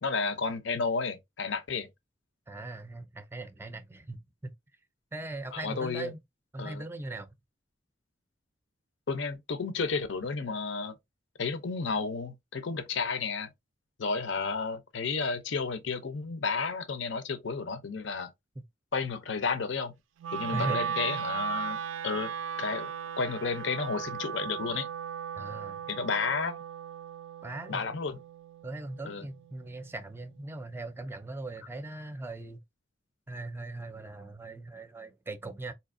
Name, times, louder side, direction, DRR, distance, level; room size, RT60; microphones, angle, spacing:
voice 1, 0.0-1.9 5.5-6.1 6.6-6.8 9.1-10.9 11.4-13.5 14.0-18.3 18.9-19.9 20.3-21.8 22.0-22.9 23.2-24.9 25.9-26.6 27.7-28.2 29.0-29.3, left 4 dB, 70° left, 0.6 m, -32 dB
voice 2, 2.5-4.5 5.1-6.2 6.5-7.3 18.6-18.7 20.5-20.8 25.4-25.8 27.4-27.9 28.6-32.6 33.3-35.7, right 2 dB, 10° right, 0.4 m, -39 dB
Wind instrument woodwind instrument, 20.2-30.4, right 7 dB, 85° right, 0.4 m, -37 dB
4.3 x 2.8 x 2.5 m
head